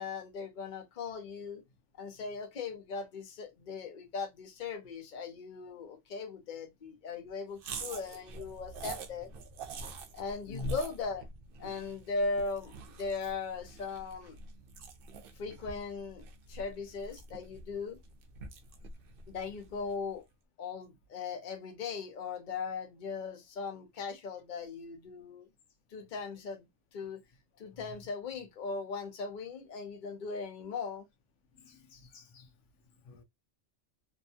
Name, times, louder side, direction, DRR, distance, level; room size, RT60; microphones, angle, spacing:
voice 1, 0.0-1.6 2.0-9.3 10.1-11.3 11.6-14.4 15.4-16.2 16.5-18.0 19.3-20.2 20.6-25.5 25.9-26.6 26.9-27.2 27.6-31.0, left 4 dB, 50° left, 0.8 m, -38 dB
sound 1, 7.6-20.1, right 3 dB, 60° right, 0.6 m, -46 dB
voice 2, 31.6-32.5 33.1-33.2, left 2 dB, 80° left, 0.9 m, -43 dB
2.7 x 2.2 x 2.7 m
omnidirectional pair, 1.2 m